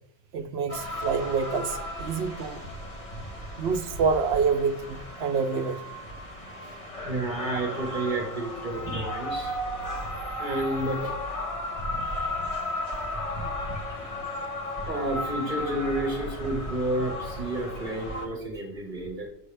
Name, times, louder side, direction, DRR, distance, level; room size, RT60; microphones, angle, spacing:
voice 1, 0.3-2.6 3.6-5.8, right 5 dB, 70° right, 9 dB, 0.9 m, -27 dB
sound 1, 0.7-18.3, left 1 dB, 30° left, 1.3 m, -35 dB
voice 2, 7.0-9.6 10.4-11.2 13.0-13.1 13.4-19.3, right 1 dB, 45° right, 2 dB, 1.2 m, -31 dB
7.6 x 6.3 x 3.3 m, 0.73 s
omnidirectional pair, 1.1 m